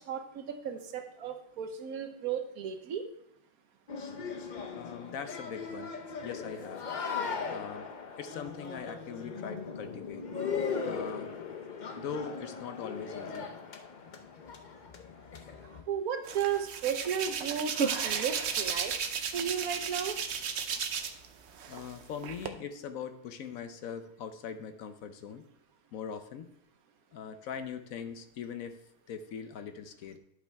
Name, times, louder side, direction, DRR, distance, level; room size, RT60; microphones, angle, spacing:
voice 1, 0.0-3.0 15.9-17.7 18.0-18.9 19.3-20.2, right 8 dB, 75° right, 7 dB, 1.3 m, -34 dB
sound 1, 3.9-15.8, left 5 dB, 45° left, 0.6 m, -38 dB
voice 2, 4.7-5.9 6.2-6.8 7.5-7.9 8.2-10.2 10.8-11.3 12.0-13.5 21.7-25.5 25.9-26.5 27.1-28.8 29.1-30.2, left 7 dB, 70° left, 9 dB, 1.1 m, -41 dB
Hands, 16.3-21.3 21.6-22.5, right 6 dB, 60° right, 0.8 m, -33 dB
11.5 x 5.4 x 3.4 m, 0.73 s
omnidirectional pair, 1.6 m